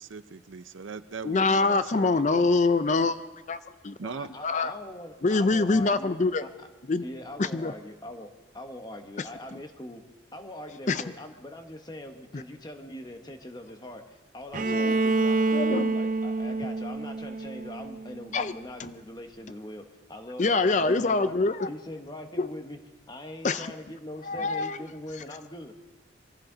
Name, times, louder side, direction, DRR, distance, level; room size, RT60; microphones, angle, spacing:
voice 1, 0.0-2.4 4.0-4.3, right 5 dB, 85° right, 14 dB, 0.6 m, -40 dB
voice 2, 1.2-3.2 3.5-3.6 3.8-4.0 4.4-4.7 5.2-6.5 6.9-7.0 7.4-7.7 10.9-11.0 12.3-12.4 14.6-14.9 15.5-16.0 18.3-18.5 18.8-18.9 20.4-21.7 22.4-22.5 23.4-23.7 24.3-24.8, left 3 dB, 40° left, 12 dB, 0.4 m, -24 dB
voice 3, 4.0-6.7 7.0-10.0 10.3-21.3 21.7-22.8 23.1-25.7, left 1 dB, 20° left, 5 dB, 1.1 m, -42 dB
Bowed string instrument, 14.5-18.4, right 3 dB, 45° right, 0.5 m, -27 dB
23.5 x 15.0 x 3.9 m, 1.2 s
head